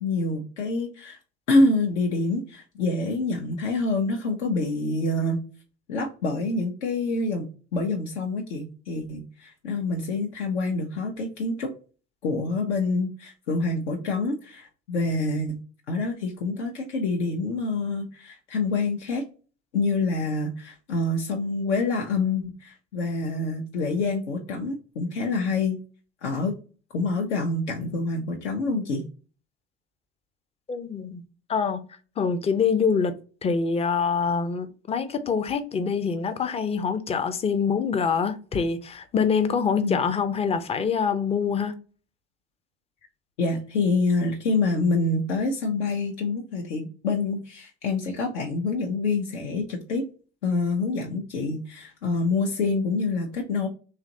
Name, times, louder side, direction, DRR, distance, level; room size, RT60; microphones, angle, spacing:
voice 1, 0.0-1.2 1.5-5.4 5.9-11.7 12.2-15.6 15.9-19.2 19.7-25.8 26.2-26.5 26.9-29.0 39.8-40.0 43.4-50.0 50.4-53.7, left 3 dB, 75° left, 0.6 m, -26 dB
voice 2, 30.7-31.2 31.5-31.8 32.2-33.1 33.4-41.7, left 6 dB, 20° left, 0.4 m, -25 dB
3.0 x 2.4 x 2.6 m
figure-of-eight pair, 60°, 35 cm